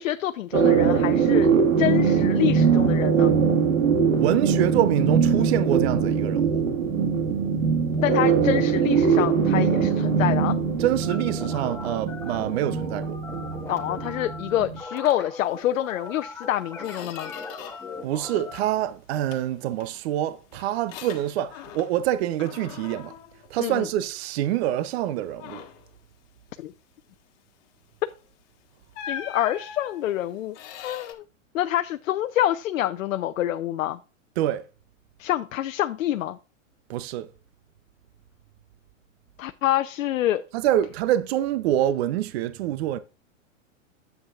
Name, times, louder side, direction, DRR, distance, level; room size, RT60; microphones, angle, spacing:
voice 1, 0.0-1.5 1.8-3.3 8.0-10.6 13.7-17.3 23.6-23.9 26.6-26.7 29.1-30.6 30.8-31.2 31.5-34.0 35.2-36.4 39.4-40.4, left 13 dB, 80° left, 0.7 m, -26 dB
sound 1, 0.5-14.8, right 6 dB, 90° right, 1.7 m, -22 dB
voice 2, 4.2-6.6 10.8-13.2 18.0-23.1 23.5-25.6 34.4-34.6 36.9-37.3 40.5-43.0, right 12 dB, 50° right, 0.7 m, -26 dB
sound 2, 11.0-18.6, left 3 dB, 5° left, 1.4 m, -39 dB
Squeak, 16.0-16.2 16.5-18.0 18.3-18.9 19.3-22.1 22.4-24.2 24.6-24.9 25.3-25.9 28.0-28.2 28.9-31.1, left 8 dB, 40° left, 1.7 m, -42 dB
9.9 x 8.1 x 2.4 m
hypercardioid pair, 130°, 39 cm